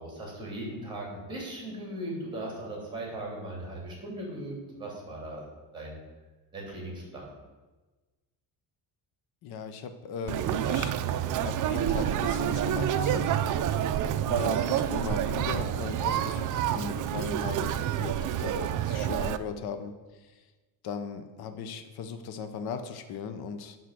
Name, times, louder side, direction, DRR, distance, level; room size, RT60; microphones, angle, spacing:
voice 1, 0.0-5.4 5.7-6.0 6.5-7.3, right 1 dB, 10° right, -2 dB, 3.2 m, -38 dB
voice 2, 9.4-10.9 11.4-13.2 14.3-19.9 20.2-20.4 20.8-23.8, left 6 dB, 55° left, 8 dB, 0.8 m, -37 dB
Conversation, 10.3-19.4, right 10 dB, 45° right, 0.5 m, -28 dB
11.5 x 3.9 x 7.6 m, 1.2 s
cardioid pair, 165°, 44 cm